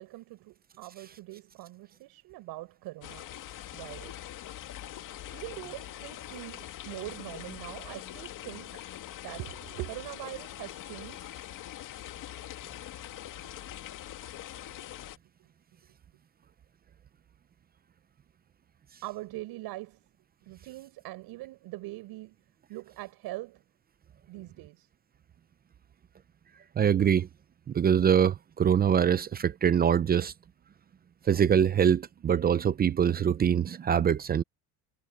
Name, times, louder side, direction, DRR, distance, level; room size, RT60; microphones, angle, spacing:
voice 1, 0.0-3.2 3.5-4.2 5.3-8.9 9.2-11.5 15.4-15.5 19.0-20.0 20.5-22.4 22.7-23.6 24.3-24.9, right 19 dB, 75° right, 7.7 m, -42 dB
sound 1, 3.0-15.2, left 13 dB, 55° left, 2.5 m, -43 dB
voice 2, 26.8-27.3 27.7-30.3 31.2-34.4, right 8 dB, 25° right, 0.5 m, -24 dB
cardioid pair, 145°, 37 cm